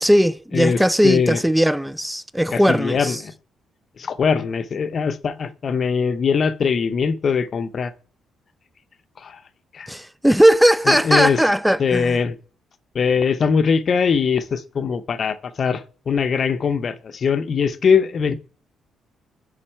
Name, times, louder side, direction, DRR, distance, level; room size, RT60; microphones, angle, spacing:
voice 1, 0.0-3.2 9.9-12.2, equal, 5° right, 0.4 m, -18 dB
voice 2, 1.0-1.4 2.5-3.3 4.0-7.9 9.2-9.4 9.7-9.9 10.9-11.4 11.8-12.4 12.9-18.3, left 6 dB, 50° left, 0.7 m, -21 dB
9.8 x 4.0 x 4.4 m
cardioid pair, 90°, 0 cm